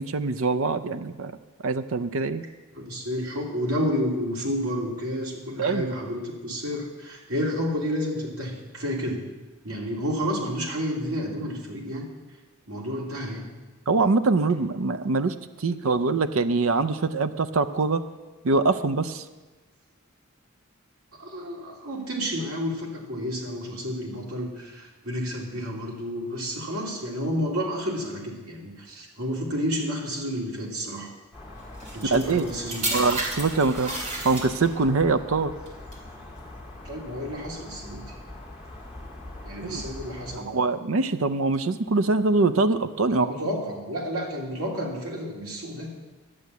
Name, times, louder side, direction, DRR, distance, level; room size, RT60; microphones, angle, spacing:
voice 1, 0.0-1.3 1.6-2.4 5.6-5.9 13.9-18.0 18.4-19.2 32.0-32.5 32.9-33.9 34.2-35.5 39.6-39.8 40.3-43.3, right 3 dB, 70° right, 11 dB, 0.6 m, -24 dB
voice 2, 2.7-9.2 9.6-12.1 12.7-13.5 21.2-31.1 31.9-33.1 36.8-38.1 39.4-40.6 43.1-45.9, equal, 90° right, -2 dB, 2.9 m, -30 dB
sound 1, 31.3-40.4, left 1 dB, 5° right, 2.5 m, -42 dB
sound 2, 31.8-34.9 35.7-35.9, right 2 dB, 35° right, 2.5 m, -32 dB
11.0 x 7.8 x 8.3 m, 1.2 s
head